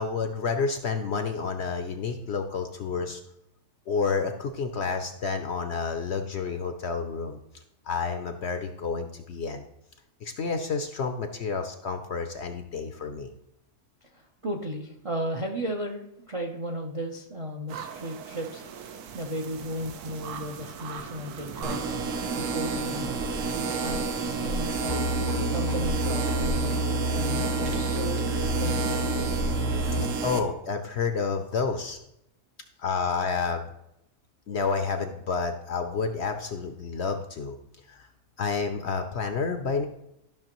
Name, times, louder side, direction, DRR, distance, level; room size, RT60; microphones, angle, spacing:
voice 1, 0.0-3.2 3.9-7.4 7.8-9.6 10.2-13.3 29.9-32.0 32.8-33.7 34.5-37.6 37.9-38.1 38.4-39.9, left 5 dB, 60° left, 7 dB, 0.7 m, -30 dB
voice 2, 14.0-18.6 19.1-21.8 22.3-25.1 25.5-28.2 28.6-29.3, equal, 40° right, 3 dB, 0.4 m, -35 dB
sound 1, 17.7-24.9, right 7 dB, 90° right, 1.2 m, -41 dB
sound 2, 21.6-30.4, right 4 dB, 65° right, 1.0 m, -30 dB
sound 3, 24.9-30.1, right 1 dB, 30° left, 0.4 m, -29 dB
12.5 x 5.8 x 3.0 m, 0.81 s
omnidirectional pair, 1.6 m